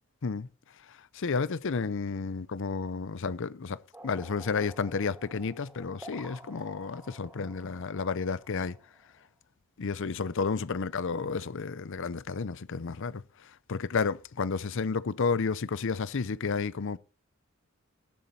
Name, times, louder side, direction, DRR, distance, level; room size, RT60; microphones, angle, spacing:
voice 1, 1.1-3.8 4.0-8.8 9.8-17.0, left 5 dB, 65° left, 0.6 m, -31 dB
sound 1, 3.9-9.3, right 1 dB, 10° right, 2.9 m, -51 dB
17.5 x 7.3 x 4.2 m
head